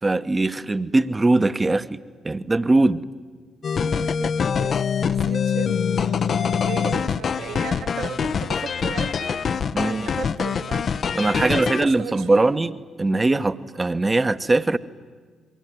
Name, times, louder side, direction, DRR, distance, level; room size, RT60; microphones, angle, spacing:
voice 1, 0.0-3.0 9.7-10.1 11.1-14.8, right 2 dB, 25° right, 13 dB, 1.2 m, -21 dB
sound 1, 3.6-11.9, left 6 dB, 50° left, 0.8 m, -24 dB
voice 2, 3.8-4.8 5.1-9.4 9.8-10.9 11.4-12.5, right 7 dB, 65° right, 6 dB, 2.2 m, -36 dB
27.5 x 23.0 x 9.5 m, 1.5 s
figure-of-eight pair, 40°, 0 cm